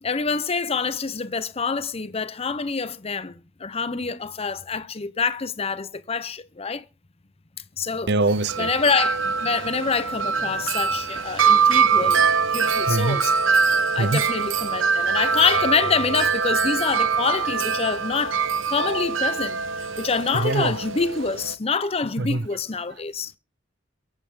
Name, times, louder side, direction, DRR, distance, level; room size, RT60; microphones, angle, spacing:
voice 1, 0.0-6.8 7.8-8.1 8.6-13.3 13.9-18.4 18.7-19.6 20.0-23.3, left 5 dB, 30° left, 0.8 m, -26 dB
voice 2, 8.1-8.7 12.0-12.1 12.9-13.2 14.0-14.3 20.3-20.7 22.2-22.5, right 2 dB, 60° right, 0.7 m, -23 dB
Wind chime, 8.2-21.6, right 6 dB, 80° right, 1.1 m, -23 dB
23.0 x 8.9 x 3.7 m
head